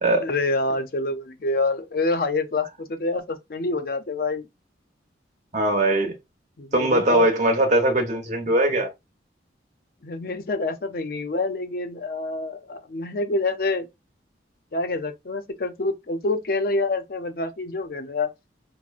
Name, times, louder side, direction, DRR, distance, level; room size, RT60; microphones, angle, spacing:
voice 1, 0.2-4.5 6.6-7.3 10.0-13.9 14.7-18.3, left 2 dB, 50° left, 0.5 m, -27 dB
voice 2, 5.5-6.1 6.7-8.9, right 1 dB, 40° right, 1.0 m, -20 dB
5.9 x 2.1 x 2.4 m
head